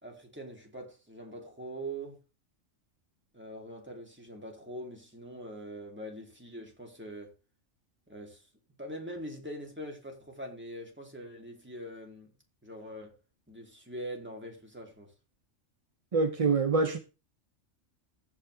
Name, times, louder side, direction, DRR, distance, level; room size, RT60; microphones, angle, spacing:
voice 1, 0.0-2.2 3.3-7.3 8.1-8.5 8.8-12.3 12.6-13.2 13.5-15.1, right 1 dB, 10° right, 2.6 m, -43 dB
voice 2, 16.1-17.0, right 4 dB, 45° right, 0.5 m, -25 dB
15.5 x 5.9 x 3.3 m
omnidirectional pair, 1.4 m